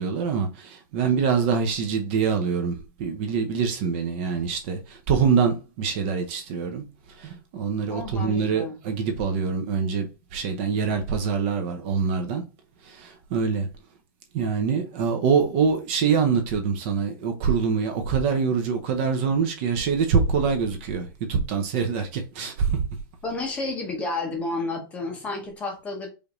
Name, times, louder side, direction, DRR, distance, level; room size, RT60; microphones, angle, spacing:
voice 1, 0.0-6.8 7.2-12.4 12.8-13.7 14.3-22.9, right 6 dB, 30° right, 0.6 m, -25 dB
voice 2, 7.9-8.8 23.2-26.1, left 3 dB, 10° left, 0.7 m, -31 dB
5.0 x 2.6 x 2.9 m
supercardioid pair, 170°, 12 cm